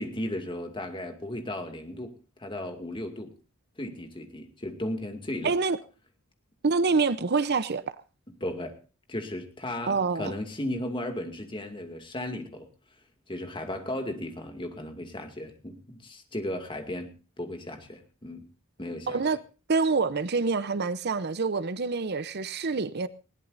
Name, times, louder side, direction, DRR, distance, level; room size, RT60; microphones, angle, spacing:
voice 1, 0.0-3.3 3.8-5.5 8.4-8.8 9.1-12.7 13.3-17.1 17.4-18.4 18.8-19.2, left 1 dB, 25° left, 2.3 m, -35 dB
voice 2, 5.4-5.8 6.6-7.8 9.9-10.3 19.1-19.4 19.7-23.1, right 4 dB, 50° right, 0.7 m, -26 dB
20.0 x 17.5 x 2.6 m
head